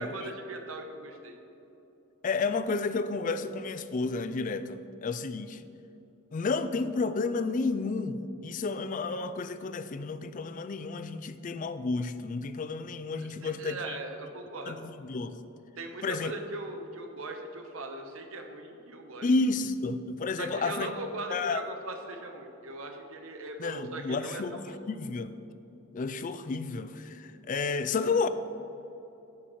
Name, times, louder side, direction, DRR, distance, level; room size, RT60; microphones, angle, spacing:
voice 1, 0.0-1.4 13.2-14.8 15.8-19.3 20.4-24.8 27.8-28.3, right 2 dB, 70° right, 4 dB, 1.0 m, -40 dB
voice 2, 2.2-5.6 6.3-14.0 14.7-15.4 16.0-16.3 19.2-20.9 21.3-21.6 23.6-24.6 24.9-25.3 25.9-28.3, left 3 dB, 35° left, 11 dB, 0.4 m, -31 dB
11.0 x 8.9 x 3.1 m, 2.9 s
head